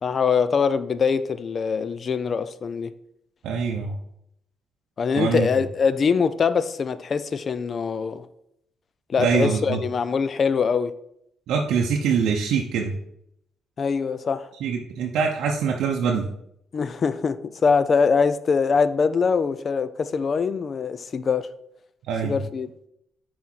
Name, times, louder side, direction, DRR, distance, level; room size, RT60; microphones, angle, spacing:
voice 1, 0.0-2.9 5.0-8.3 9.1-10.9 13.8-14.5 16.7-21.5 22.2-22.7, left 5 dB, 45° left, 0.4 m, -23 dB
voice 2, 3.4-4.0 5.2-5.5 9.2-9.8 11.5-12.9 14.6-16.3 22.1-22.4, right 6 dB, 80° right, 0.6 m, -24 dB
6.1 x 4.2 x 4.4 m
cardioid pair, 90°, 0 cm